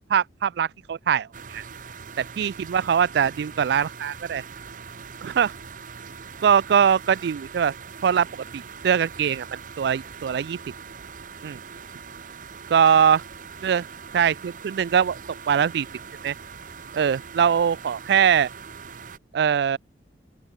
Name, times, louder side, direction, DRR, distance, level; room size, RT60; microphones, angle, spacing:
voice 1, 0.0-1.6 2.2-4.4 5.2-5.5 6.4-7.7 8.0-10.6 11.4-11.6 12.7-13.2 13.6-13.9 14.1-15.2 15.5-15.9 16.2-16.4 16.9-18.5 19.3-19.8, right 8 dB, 60° right, 0.3 m, -22 dB
sound 1, 1.3-19.2, right 6 dB, 45° right, 0.8 m, -42 dB
open air
head